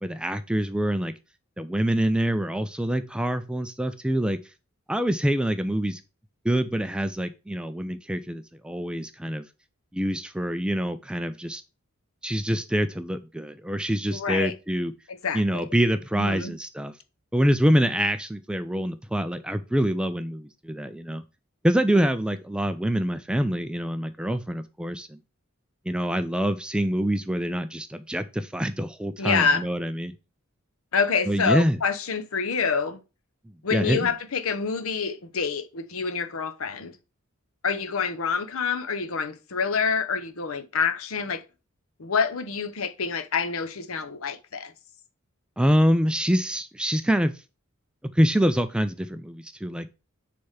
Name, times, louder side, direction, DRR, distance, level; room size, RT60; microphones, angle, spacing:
voice 1, 0.0-1.1 1.6-4.4 4.9-6.0 6.4-9.4 9.9-11.6 12.2-14.9 15.3-16.9 17.3-21.2 21.6-25.2 25.9-30.1 31.3-31.8 33.7-34.1 45.6-47.3 48.1-49.9, equal, 5° right, 0.4 m, -25 dB
voice 2, 14.1-14.5 15.2-15.6 16.1-16.5 29.2-29.7 30.9-33.0 33.6-36.9 37.6-41.4 42.0-44.7, left 5 dB, 70° left, 0.8 m, -27 dB
6.4 x 3.4 x 5.6 m
head